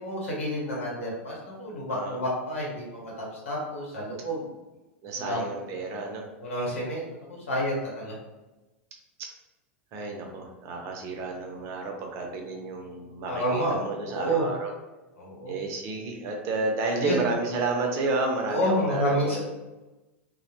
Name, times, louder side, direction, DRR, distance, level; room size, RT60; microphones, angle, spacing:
voice 1, 0.0-4.5 5.2-5.6 6.4-7.1 7.5-8.1 13.3-13.8 14.1-14.4 15.2-15.5 17.0-17.2 18.5-19.4, equal, 90° left, -4 dB, 0.9 m, -29 dB
voice 2, 1.9-2.2 5.0-6.2 9.2-9.3 9.9-14.7 15.5-19.4, right 3 dB, 45° right, 1 dB, 0.6 m, -31 dB
2.1 x 2.1 x 2.8 m, 1.1 s
hypercardioid pair, 105°, 7 cm